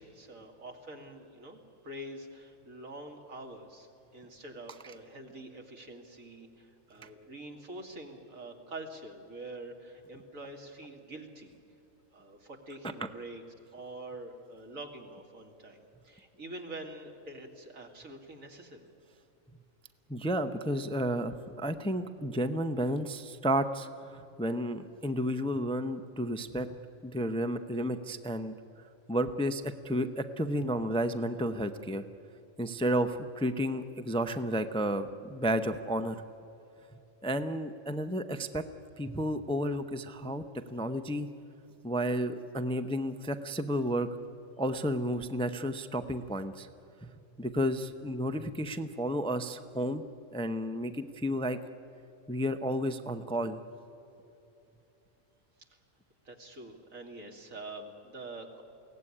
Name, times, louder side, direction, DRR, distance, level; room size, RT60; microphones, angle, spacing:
voice 1, 0.0-1.6 1.8-11.6 12.1-13.4 13.7-18.9 56.2-58.6, right 2 dB, 85° right, 2 dB, 2.8 m, -45 dB
voice 2, 20.1-23.9 24.1-26.7 27.0-28.6 29.1-32.0 32.6-36.2 37.2-38.6 39.0-40.4 40.7-41.3 41.8-44.1 44.6-46.7 47.0-47.1 47.4-50.0 50.3-51.6 52.3-53.6, equal, 5° left, 9 dB, 0.5 m, -32 dB
23.0 x 17.0 x 9.9 m, 2.9 s
omnidirectional pair, 1.4 m